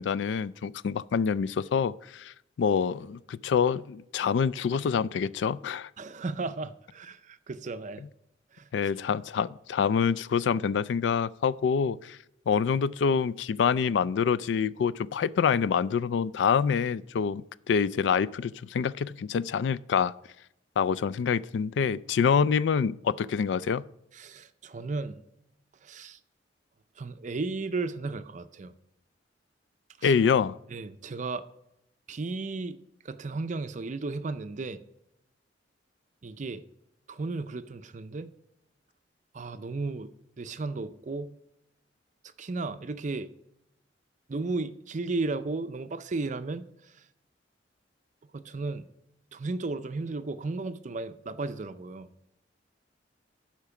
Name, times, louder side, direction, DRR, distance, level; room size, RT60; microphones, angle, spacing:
voice 1, 0.0-2.3 2.6-5.9 8.7-12.2 12.5-20.1 20.8-23.9 30.0-30.6, left 6 dB, 75° left, 0.3 m, -26 dB
voice 2, 6.0-8.0 8.5-8.7 24.1-25.2 25.8-26.2 27.0-28.7 30.0-30.1 30.7-31.4 32.1-32.8 33.0-34.8 36.2-36.6 37.1-38.3 39.3-41.4 42.4-43.3 44.3-46.6 48.3-48.8 49.3-52.1, right 3 dB, 45° right, 0.5 m, -34 dB
12.0 x 4.5 x 5.8 m
head